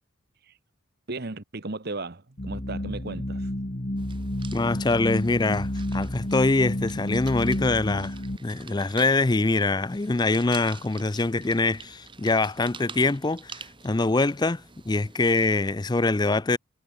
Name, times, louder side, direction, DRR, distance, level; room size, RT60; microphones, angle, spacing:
voice 1, 1.1-3.5, right 2 dB, 50° right, 1.2 m, -35 dB
sound 1, 2.4-8.4, left 1 dB, 40° left, 1.9 m, -31 dB
sound 2, 4.0-15.5, right 5 dB, 25° right, 3.1 m, -47 dB
voice 2, 4.5-16.6, left 3 dB, 20° left, 0.5 m, -24 dB
head